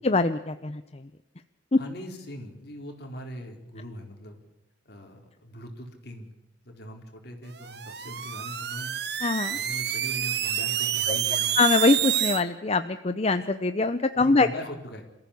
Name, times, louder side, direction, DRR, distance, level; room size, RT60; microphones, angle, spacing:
voice 1, 0.0-1.0 1.7-1.8 9.2-9.6 11.1-11.2 11.6-14.5, left 3 dB, 35° left, 10 dB, 0.7 m, -23 dB
voice 2, 1.7-4.4 4.8-6.3 6.6-8.9 9.5-11.5 14.2-15.0, equal, 60° left, 3 dB, 4.4 m, -40 dB
sound 1, 7.6-12.4, right 10 dB, 60° right, 1.3 m, -28 dB
27.0 x 15.0 x 8.5 m, 1.0 s
head